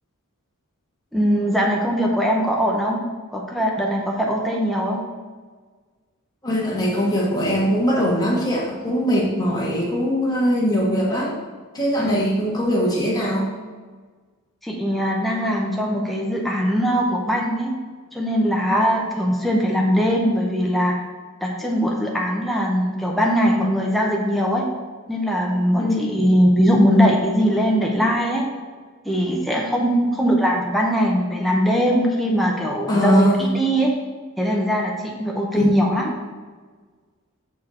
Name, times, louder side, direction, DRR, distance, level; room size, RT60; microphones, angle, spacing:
voice 1, 1.1-3.0 3.3-5.0 12.0-12.2 14.6-17.7 18.1-20.9 21.4-24.7 25.1-28.5 29.0-33.3 33.5-33.9 34.4-36.1, equal, ahead, -2 dB, 0.7 m, -21 dB
voice 2, 6.4-11.3 11.7-13.5 25.7-26.2 29.8-30.0 32.9-33.5 35.5-35.6, equal, 20° left, -5 dB, 1.6 m, -21 dB
6.2 x 4.6 x 4.2 m, 1.5 s
head